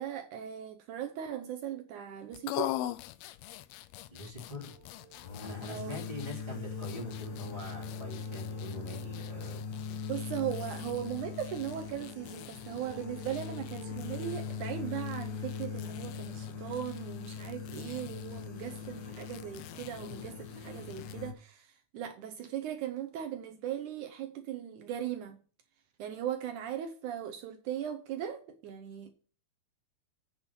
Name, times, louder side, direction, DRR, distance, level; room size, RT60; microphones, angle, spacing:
voice 1, 0.0-2.8 5.7-6.0 10.1-25.4 26.0-29.1, right 10 dB, 75° right, 1.9 m, -38 dB
sound 1, 2.3-21.2, left 14 dB, 90° left, 2.5 m, -45 dB
voice 2, 4.1-4.7 5.4-9.6, left 1 dB, 15° right, 3.3 m, -43 dB
sound 2, 4.7-14.3, right 7 dB, 60° right, 2.4 m, -56 dB
sound 3, 5.1-21.3, left 6 dB, 55° left, 2.1 m, -41 dB
8.8 x 6.0 x 6.0 m
omnidirectional pair, 4.3 m